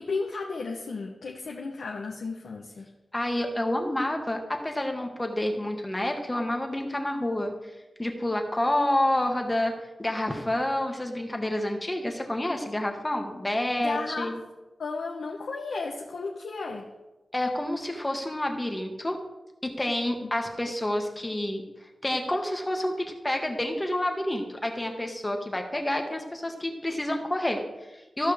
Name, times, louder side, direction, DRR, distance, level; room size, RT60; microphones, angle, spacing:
voice 1, 0.0-2.9 13.8-14.3 14.8-16.9 20.2-20.3, left 4 dB, 90° left, -1 dB, 0.9 m, -34 dB
voice 2, 3.1-9.7 10.0-14.4 17.3-19.2 19.6-28.3, left 1 dB, 20° left, 3 dB, 1.4 m, -29 dB
15.0 x 5.5 x 3.4 m, 1.1 s
cardioid pair, 60°, 0 cm